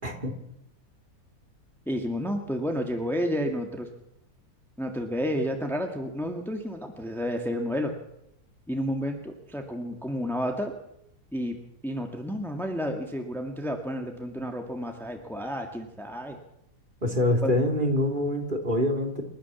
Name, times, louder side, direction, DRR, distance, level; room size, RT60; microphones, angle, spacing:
voice 1, 0.0-0.3 17.0-19.2, left 1 dB, 30° right, 3 dB, 3.4 m, -25 dB
voice 2, 1.9-3.9 4.8-7.9 8.7-10.7 11.3-11.6 11.8-16.4 17.4-17.5, equal, ahead, 3 dB, 1.9 m, -31 dB
28.5 x 13.0 x 7.2 m, 0.80 s
omnidirectional pair, 1.7 m